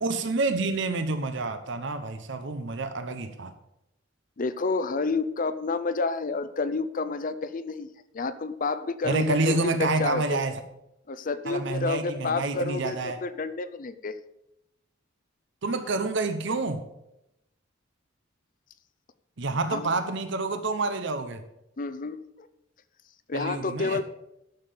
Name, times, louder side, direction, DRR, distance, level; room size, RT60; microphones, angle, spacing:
voice 1, 0.0-3.5 9.0-10.5 11.5-13.2 15.6-16.8 19.4-21.4 23.3-24.0, right 3 dB, 65° right, 9 dB, 0.8 m, -28 dB
voice 2, 4.4-7.9 8.1-10.4 11.1-14.2 19.7-19.9 21.8-22.5 23.3-24.0, left 3 dB, 45° left, 12 dB, 0.5 m, -29 dB
11.0 x 6.8 x 6.9 m, 0.86 s
head